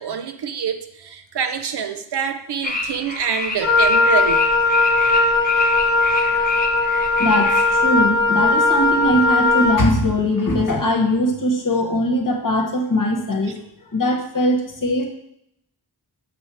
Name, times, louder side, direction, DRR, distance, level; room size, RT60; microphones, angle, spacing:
voice 1, 0.0-4.4, right 7 dB, 70° right, 8 dB, 0.6 m, -26 dB
sound 1, 2.6-7.8, left 3 dB, 20° left, 1.0 m, -28 dB
Wind instrument woodwind instrument, 3.6-9.9, left 3 dB, 85° left, 0.9 m, -18 dB
voice 2, 7.2-13.6 13.9-15.1, left 1 dB, 50° left, 3 dB, 1.1 m, -20 dB
6.6 x 3.2 x 4.7 m, 0.77 s
wide cardioid pair, 65°, 41 cm